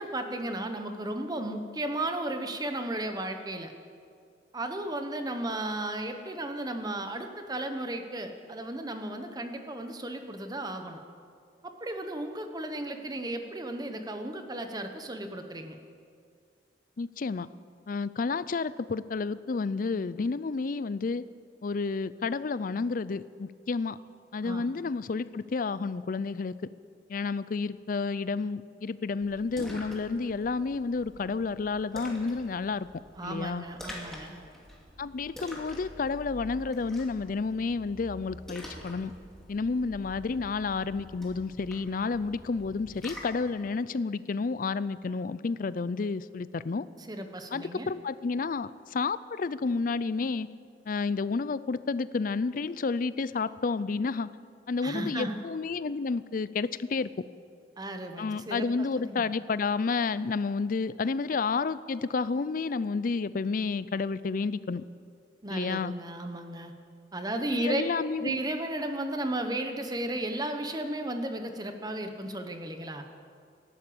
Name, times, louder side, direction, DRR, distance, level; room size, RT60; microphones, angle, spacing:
voice 1, 0.0-3.7 4.5-11.0 11.6-15.8 24.4-24.7 33.2-34.4 47.1-47.9 54.8-55.4 57.8-58.7 59.0-59.3 65.4-66.7 67.1-67.8 68.2-73.0, right 1 dB, 20° right, 6 dB, 1.1 m, -34 dB
voice 2, 17.0-17.5 17.9-21.2 21.6-24.0 24.3-26.5 27.1-32.9 33.2-33.6 35.0-39.1 39.5-46.9 47.5-50.5 50.9-54.3 54.7-57.1 58.2-64.8 65.5-65.9 67.5-68.4, left 4 dB, 50° left, 16 dB, 0.4 m, -30 dB
Splash splatter, 29.2-43.5, equal, 5° left, 2.6 m, -46 dB
13.5 x 12.0 x 8.7 m, 2.2 s
head